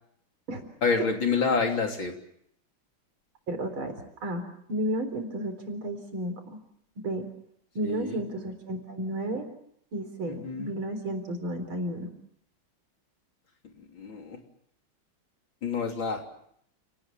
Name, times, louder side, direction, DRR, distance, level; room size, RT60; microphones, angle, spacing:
voice 1, 0.8-2.1 7.8-8.2 10.3-10.7 13.6-14.4 15.6-16.3, left 5 dB, 70° left, 2 dB, 4.2 m, -28 dB
voice 2, 3.5-4.4 4.7-6.6 7.0-7.3 7.7-9.4 9.9-12.1, right 1 dB, 80° right, 7 dB, 4.8 m, -32 dB
29.5 x 19.0 x 7.4 m, 0.71 s
omnidirectional pair, 2.3 m